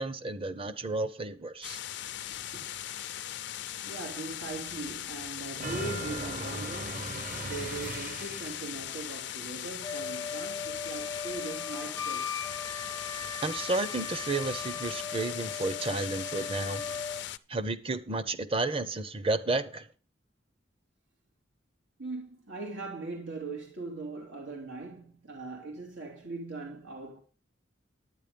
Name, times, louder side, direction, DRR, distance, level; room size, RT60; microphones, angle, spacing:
voice 1, 0.0-1.8 13.4-16.9 17.5-19.9, right 3 dB, 30° right, 0.9 m, -32 dB
sound 1, 1.6-17.4, left 12 dB, 65° left, 0.6 m, -39 dB
voice 2, 3.8-12.3 22.0-27.2, right 3 dB, 90° right, 2.8 m, -40 dB
sound 2, 5.6-8.8, right 2 dB, 45° right, 1.2 m, -38 dB
Wind instrument woodwind instrument, 9.8-17.2, left 5 dB, 15° left, 0.5 m, -38 dB
11.0 x 9.4 x 5.3 m
head